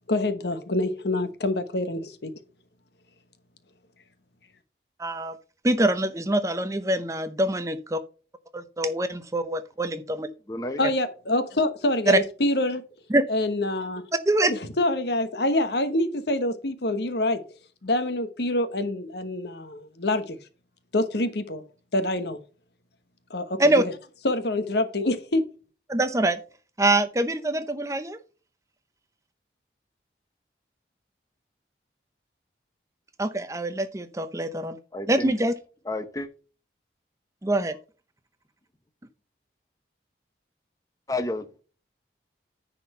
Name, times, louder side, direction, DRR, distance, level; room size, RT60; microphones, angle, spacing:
voice 1, 0.1-2.3 10.8-12.8 13.3-14.0 14.5-17.4 17.8-20.4 20.9-21.6 21.9-22.4 23.3-23.9 24.2-25.4, left 1 dB, 65° left, 1.1 m, -26 dB
voice 2, 5.0-5.3 5.6-8.0 8.5-10.3 12.1-12.2 13.1-13.2 14.3-14.5 23.6-23.8 25.9-26.4 26.8-28.2 33.2-34.8 35.1-35.5 37.4-37.7, right 1 dB, 15° right, 0.6 m, -24 dB
voice 3, 10.5-10.8 34.9-35.3 35.9-36.3 41.1-41.6, left 2 dB, 20° left, 0.7 m, -30 dB
9.9 x 4.2 x 5.4 m
head